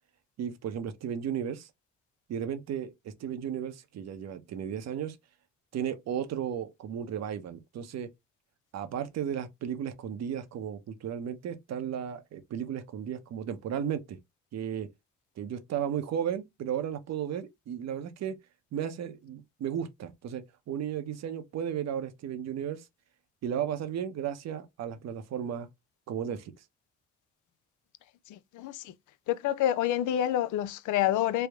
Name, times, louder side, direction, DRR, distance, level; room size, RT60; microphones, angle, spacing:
voice 1, 0.4-1.7 2.3-5.2 5.7-8.1 8.7-14.2 14.5-14.9 15.4-18.4 18.7-22.8 23.4-25.7 26.1-26.5, right 9 dB, 60° right, 0.7 m, -34 dB
voice 2, 29.3-31.5, left 12 dB, 75° left, 0.5 m, -27 dB
3.4 x 2.0 x 3.4 m
cardioid pair, 90°, 30 cm